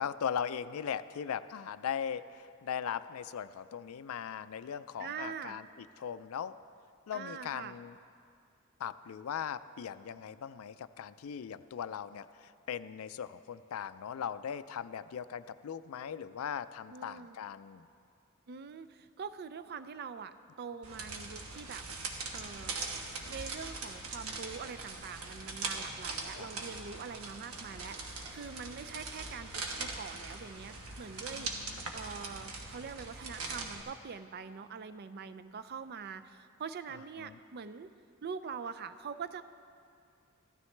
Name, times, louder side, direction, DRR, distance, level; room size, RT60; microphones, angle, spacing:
voice 1, 0.0-6.6 7.1-8.0 8.8-17.9 26.3-26.5 31.3-31.8 37.2-37.4, left 8 dB, 75° left, 14 dB, 0.4 m, -39 dB
voice 2, 5.0-5.6 7.1-7.8 16.9-17.4 18.5-21.8 22.3-22.7 23.3-31.5 31.9-37.9 38.2-39.4, right 6 dB, 50° right, 11 dB, 0.4 m, -44 dB
sound 1, 20.8-33.8, right 3 dB, 85° right, 1.2 m, -41 dB
15.5 x 12.5 x 3.3 m, 2.4 s
head